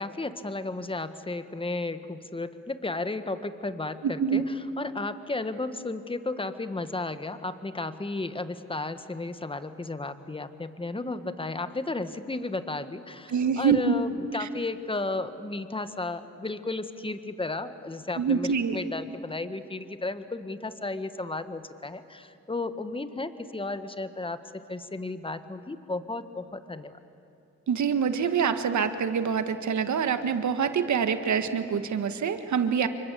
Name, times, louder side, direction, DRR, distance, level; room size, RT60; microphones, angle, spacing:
voice 1, 0.0-27.0, left 2 dB, 15° left, 11 dB, 1.5 m, -34 dB
voice 2, 13.3-13.9 14.4-14.5 18.2-18.8 27.7-32.9, right 7 dB, 70° right, 9 dB, 1.7 m, -25 dB
28.0 x 24.0 x 8.5 m, 2.7 s
cardioid pair, 70°, 30 cm